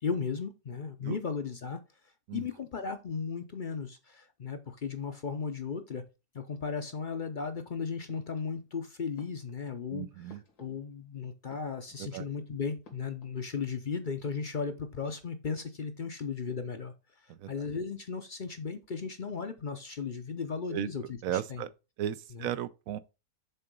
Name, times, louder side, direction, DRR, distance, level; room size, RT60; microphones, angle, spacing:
voice 1, 0.0-1.8 2.3-6.0 6.3-16.9 17.2-21.6 22.3-22.5, left 5 dB, 50° left, 0.6 m, -36 dB
sound 1, 8.1-8.8 9.2-11.1 11.4-12.2 12.8-13.5 13.7-13.8 14.1-14.8, left 2 dB, 80° left, 2.1 m, -59 dB
voice 2, 9.9-10.4 12.0-12.3 17.3-17.5 20.7-20.9 21.2-21.7 22.0-23.0, right 11 dB, 70° right, 0.9 m, -35 dB
6.7 x 3.9 x 5.2 m
omnidirectional pair, 1.6 m